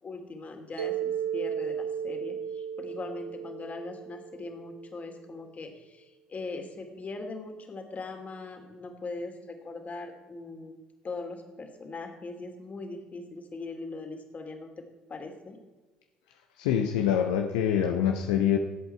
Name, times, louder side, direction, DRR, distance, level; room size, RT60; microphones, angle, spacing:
voice 1, 0.0-10.8 11.0-14.7 15.1-15.6, left 3 dB, 35° left, 4 dB, 2.8 m, -40 dB
Mallet percussion, 0.8-4.9, right 8 dB, 85° right, 0.9 m, -35 dB
voice 2, 16.6-18.6, left 9 dB, 75° left, 5 dB, 0.8 m, -25 dB
18.5 x 8.1 x 4.5 m, 1.2 s
hypercardioid pair, 60°, 4 cm